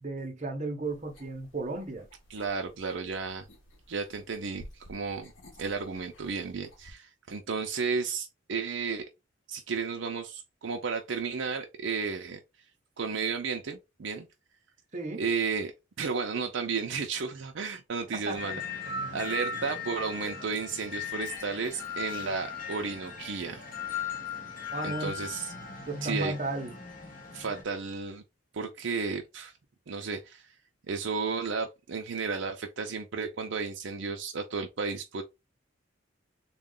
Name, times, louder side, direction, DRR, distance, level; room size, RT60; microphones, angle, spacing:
voice 1, 0.0-2.1 14.9-15.2 18.3-18.5 24.7-25.2 25.9-26.7, right 2 dB, 35° right, 0.8 m, -35 dB
sound 1, 0.8-6.9, left 1 dB, 65° left, 1.0 m, -54 dB
voice 2, 2.3-3.5 3.9-5.3 5.6-9.1 9.5-12.4 13.0-14.3 15.2-15.7 16.0-18.6 19.1-23.6 24.8-25.5 26.0-26.3 27.3-28.2 28.5-29.5 29.9-30.5 30.9-35.2, right 5 dB, 60° right, 0.5 m, -33 dB
sound 2, 18.4-27.6, left 5 dB, 40° left, 1.0 m, -37 dB
3.6 x 2.3 x 3.8 m
head